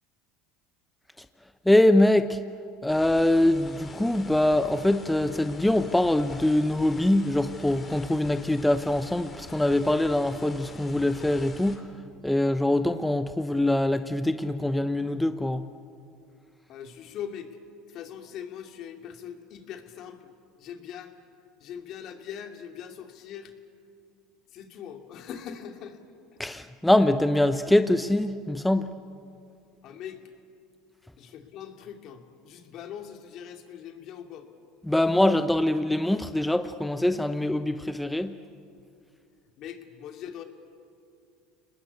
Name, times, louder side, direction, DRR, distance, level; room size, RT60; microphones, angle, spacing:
voice 1, 1.6-2.4 2.8-11.9 12.2-15.7 26.4-28.9 34.9-38.3, left 1 dB, 5° left, 10 dB, 0.8 m, -23 dB
sound 1, 2.9-11.8, left 4 dB, 25° left, 3.3 m, -45 dB
voice 2, 16.7-17.6 17.9-20.3 20.6-21.1 21.6-23.6 24.5-26.0 26.3-26.4 29.8-30.2 31.2-34.5 39.6-40.4, left 8 dB, 55° left, 5 dB, 2.7 m, -41 dB
30.0 x 20.0 x 8.4 m, 2.5 s
hypercardioid pair, 90°, 0 cm